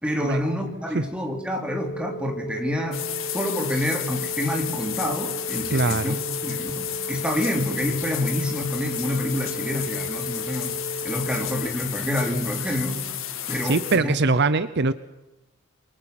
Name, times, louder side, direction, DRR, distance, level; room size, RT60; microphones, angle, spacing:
voice 1, 0.0-6.2 6.4-10.8 11.0-13.0 13.5-14.1, equal, 5° right, 2 dB, 3.6 m, -28 dB
sound 1, 1.7-11.7, equal, 25° left, 2.2 m, -35 dB
sound 2, 2.9-14.0, left 11 dB, 65° left, 1.9 m, -32 dB
voice 2, 5.7-6.2 13.6-14.9, right 3 dB, 55° right, 14 dB, 0.8 m, -22 dB
28.0 x 23.0 x 6.0 m, 1.0 s
head